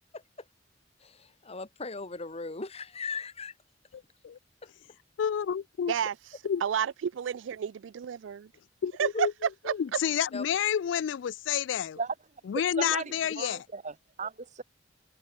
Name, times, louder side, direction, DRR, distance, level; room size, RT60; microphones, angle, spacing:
voice 1, 1.0-3.5 4.6-4.7 9.1-9.3 10.3-10.4, left 4 dB, 35° left, 1.7 m, -38 dB
voice 2, 3.9-4.4 5.2-5.9 6.4-6.6 8.8-9.3 9.7-12.0 12.5-13.6, left 8 dB, 80° left, 0.3 m, -29 dB
voice 3, 6.6-8.5 9.0-9.3 9.7-9.8, right 8 dB, 85° right, 0.4 m, -30 dB
voice 4, 12.5-14.6, right 4 dB, 40° right, 1.2 m, -36 dB
head